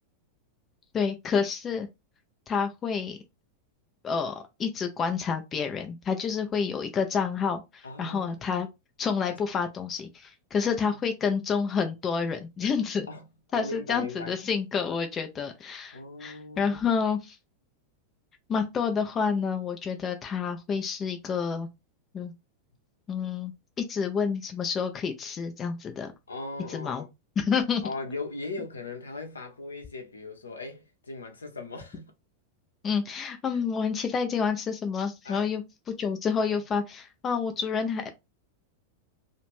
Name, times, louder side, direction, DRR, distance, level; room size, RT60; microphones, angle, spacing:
voice 1, 0.9-1.9 2.5-3.2 4.0-8.7 9.0-13.1 13.5-17.4 18.5-21.7 22.1-22.3 23.1-26.1 26.7-27.1 27.4-27.8 32.8-35.6 36.0-38.1, left 6 dB, 25° left, 0.4 m, -29 dB
voice 2, 7.8-8.4 9.3-9.4 10.6-11.0 13.1-13.3 13.5-14.4 15.9-16.9 26.3-27.1 27.8-32.1 33.5-33.6 35.2-35.5 36.5-36.6, left 3 dB, 75° left, 0.7 m, -39 dB
2.4 x 2.1 x 3.0 m
figure-of-eight pair, 90°, 0 cm